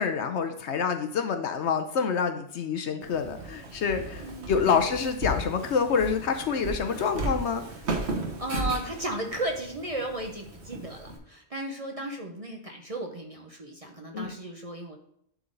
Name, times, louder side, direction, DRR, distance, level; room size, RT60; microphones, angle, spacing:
voice 1, 0.0-7.6 14.1-14.3, left 6 dB, 65° left, 7 dB, 0.9 m, -27 dB
Walk footsteps, 3.0-11.2, right 2 dB, 55° right, 1.4 m, -35 dB
voice 2, 4.2-4.9 8.4-15.0, right 1 dB, 30° right, 1 dB, 0.8 m, -35 dB
11.0 x 3.8 x 3.9 m, 0.71 s
omnidirectional pair, 1.4 m